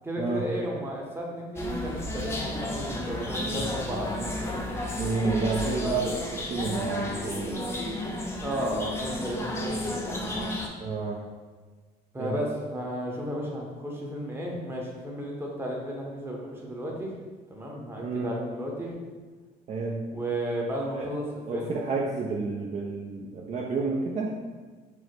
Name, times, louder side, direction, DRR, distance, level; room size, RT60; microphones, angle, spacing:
voice 1, 0.0-4.6 5.8-5.9 8.4-10.5 12.1-17.1 17.5-19.0 20.1-21.3 21.5-21.7, equal, 15° right, -2 dB, 0.9 m, -33 dB
sound 1, 1.6-10.7, left 1 dB, 15° left, 0.6 m, -32 dB
voice 2, 4.9-6.0 6.5-7.8 10.8-11.2 12.2-12.4 18.0-18.3 19.7-20.0 20.9-21.1 21.5-24.3, right 4 dB, 40° right, -2 dB, 0.5 m, -30 dB
4.7 x 2.0 x 4.4 m, 1.4 s
cardioid pair, 110°, 17 cm